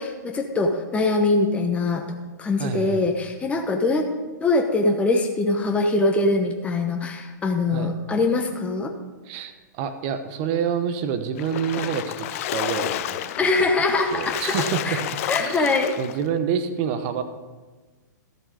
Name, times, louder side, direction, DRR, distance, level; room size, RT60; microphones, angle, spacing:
voice 1, 0.0-2.0 2.4-4.1 4.4-8.9 13.4-15.0 15.3-15.9, left 3 dB, 10° left, 3 dB, 1.0 m, -23 dB
voice 2, 2.6-3.1 7.7-7.9 9.2-13.7 14.1-15.0 15.4-17.2, right 7 dB, 40° right, 9 dB, 1.1 m, -28 dB
Splash splatter, 11.4-16.2, left 12 dB, 45° left, 0.5 m, -30 dB
13.5 x 7.3 x 5.0 m, 1.3 s
hypercardioid pair, 115°, 10 cm